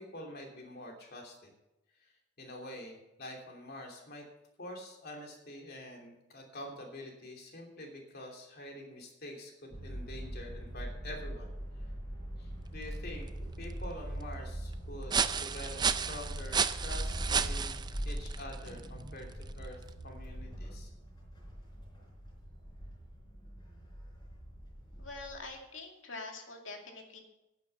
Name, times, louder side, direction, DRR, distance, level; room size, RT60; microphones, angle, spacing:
voice 1, 0.0-1.5 2.0-2.1 2.4-4.3 4.6-11.5 11.8-11.9 12.4-13.3 13.6-20.9, left 1 dB, 55° left, 1 dB, 2.9 m, -46 dB
sound 1, 9.7-25.6, equal, 20° left, 4.3 m, -42 dB
sound 2, 12.7-20.1, right 6 dB, 20° right, 0.4 m, -35 dB
sound 3, 18.7-21.2, right 1 dB, 65° right, 1.7 m, -54 dB
voice 2, 25.0-27.2, left 3 dB, 85° left, 2 dB, 2.3 m, -45 dB
10.5 x 9.3 x 6.9 m, 0.93 s
head